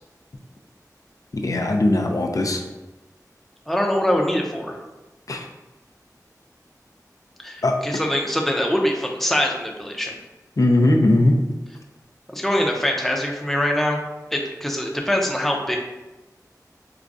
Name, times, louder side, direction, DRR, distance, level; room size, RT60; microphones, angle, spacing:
voice 1, 1.3-2.6 5.3-5.5 7.6-7.8 10.6-11.4, left 1 dB, 60° left, 2 dB, 0.4 m, -19 dB
voice 2, 3.7-4.8 7.4-10.2 12.3-14.0 14.3-15.8, equal, 5° left, 0 dB, 0.6 m, -23 dB
4.7 x 2.2 x 2.6 m, 1.1 s
wide cardioid pair, 50°, 7 cm